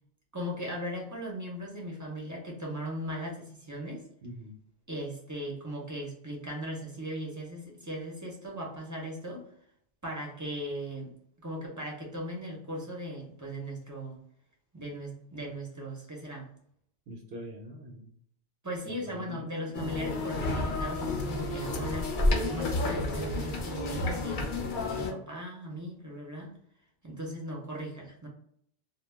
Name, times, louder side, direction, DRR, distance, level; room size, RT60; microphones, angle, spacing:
voice 1, 0.3-4.1 4.9-9.5 10.0-11.1 11.4-14.2 14.7-16.5 18.6-22.2 22.4-26.5 27.0-28.3, equal, 25° right, -2 dB, 0.4 m, -38 dB
voice 2, 4.2-4.5 17.1-18.1 18.9-19.4 24.7-25.0, equal, 70° right, 1 dB, 0.8 m, -44 dB
sound 1, 19.7-25.1, left 2 dB, 55° left, 0.6 m, -30 dB
2.2 x 2.0 x 3.2 m, 0.68 s
omnidirectional pair, 1.1 m